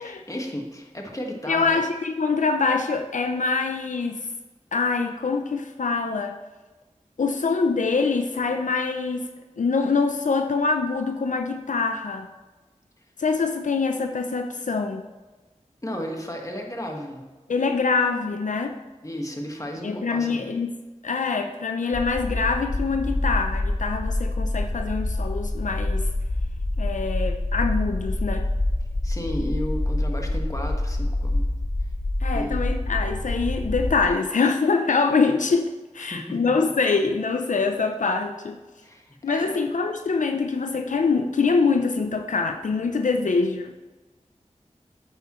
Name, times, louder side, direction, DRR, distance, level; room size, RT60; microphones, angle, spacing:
voice 1, 0.0-1.8 15.8-17.2 19.0-20.4 29.0-31.5 32.3-32.7 36.0-36.4 38.8-39.5, equal, 25° left, 1 dB, 1.5 m, -33 dB
voice 2, 1.5-4.3 4.7-6.4 7.2-9.2 9.6-12.3 13.2-15.0 17.5-18.8 19.8-20.8 21.0-26.1 26.8-28.5 32.2-38.6 39.2-43.7, left 4 dB, 80° left, 5 dB, 0.5 m, -24 dB
sound 1, 21.9-34.1, left 1 dB, 50° left, 0.9 m, -26 dB
9.1 x 8.0 x 3.1 m, 1.2 s
wide cardioid pair, 50°, 13 cm